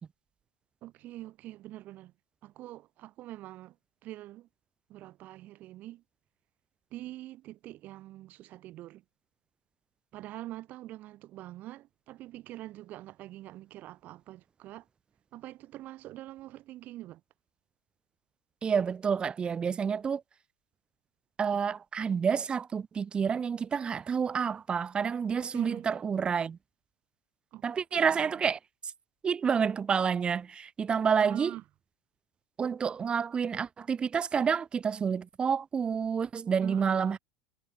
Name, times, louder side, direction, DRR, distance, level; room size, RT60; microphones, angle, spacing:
voice 1, 0.8-2.1 2.4-3.8 4.0-4.5 4.9-6.0 6.9-9.0 10.1-14.9 15.3-17.2 25.5-25.9 27.5-27.6 27.9-28.4 31.2-31.6 36.6-37.1, right 15 dB, 50° right, 6.5 m, -44 dB
voice 2, 18.6-20.2 21.4-26.6 27.6-28.6 29.2-31.5 32.6-37.2, right 6 dB, 25° right, 1.4 m, -29 dB
hypercardioid pair, 95°, 4 cm